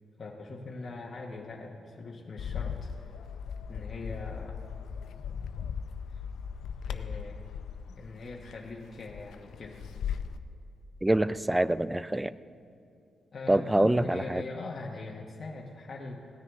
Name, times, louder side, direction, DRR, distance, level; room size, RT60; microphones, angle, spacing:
voice 1, 0.2-2.9 3.7-4.6 6.1-6.2 6.9-7.4 7.9-9.8 13.3-16.3, left 3 dB, 40° left, -2 dB, 1.1 m, -41 dB
Bird, 2.4-10.4, left 7 dB, 85° left, 0.5 m, -38 dB
voice 2, 11.0-12.3 13.5-14.4, right 1 dB, 10° right, 16 dB, 0.3 m, -25 dB
17.0 x 9.8 x 3.6 m, 2.6 s
cardioid pair, 85°, 0 cm